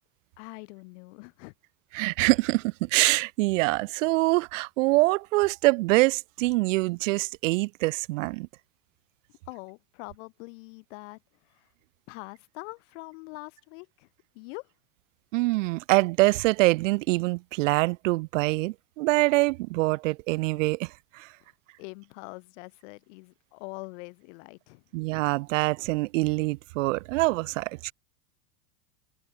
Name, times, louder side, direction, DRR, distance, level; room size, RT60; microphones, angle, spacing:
voice 1, 0.4-1.5 9.5-11.7 12.1-14.1 14.3-14.7 21.4-21.5 21.8-24.8, left 29 dB, 60° left, 3.1 m, -44 dB
voice 2, 1.9-8.5 15.3-21.3 24.9-27.9, right 22 dB, 65° right, 0.6 m, -25 dB
hypercardioid pair, 115°, 41 cm